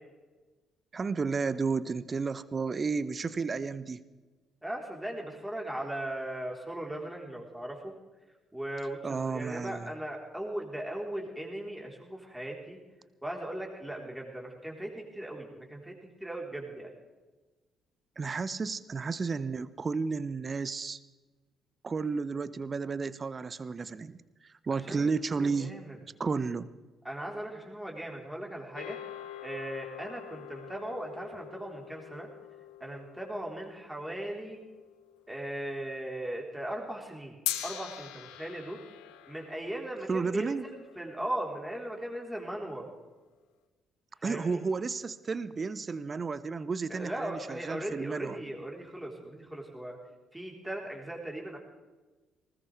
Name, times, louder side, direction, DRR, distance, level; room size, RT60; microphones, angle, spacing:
voice 1, 0.9-4.0 9.0-9.9 18.2-21.0 21.8-25.7 26.2-26.7 40.1-40.6 44.2-48.4, right 4 dB, 35° right, 16 dB, 0.8 m, -32 dB
voice 2, 4.6-7.9 8.5-12.8 13.2-15.9 16.2-16.9 24.7-26.0 27.0-29.0 29.4-32.3 32.8-34.6 35.3-37.4 37.6-38.8 39.3-42.9 44.2-44.6 46.9-50.0 50.3-51.6, right 1 dB, 5° right, 0 dB, 4.1 m, -38 dB
sound 1, 28.7-35.2 37.5-41.9, left 13 dB, 65° left, 0.9 m, -43 dB
20.0 x 19.0 x 3.5 m, 1.2 s
figure-of-eight pair, 45°, 0 cm